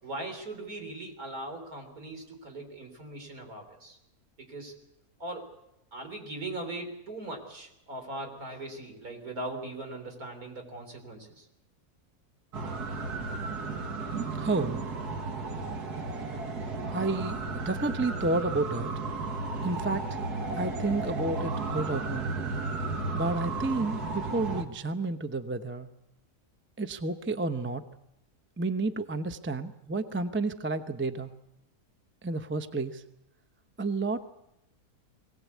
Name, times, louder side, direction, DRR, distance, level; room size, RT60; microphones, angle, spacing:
voice 1, 0.0-4.0 4.4-4.7 5.2-5.5 5.9-11.5, right 2 dB, 65° right, 4 dB, 4.3 m, -40 dB
Alarm in big City, 12.5-24.6, right 3 dB, 85° right, 2.3 m, -34 dB
voice 2, 14.4-14.8 16.9-18.9 19.6-20.2 20.6-22.3 23.1-25.9 26.8-27.8 28.6-31.3 32.2-33.0 33.8-34.3, right 3 dB, 10° right, 9 dB, 0.6 m, -31 dB
23.0 x 18.0 x 8.3 m, 0.86 s
omnidirectional pair, 1.6 m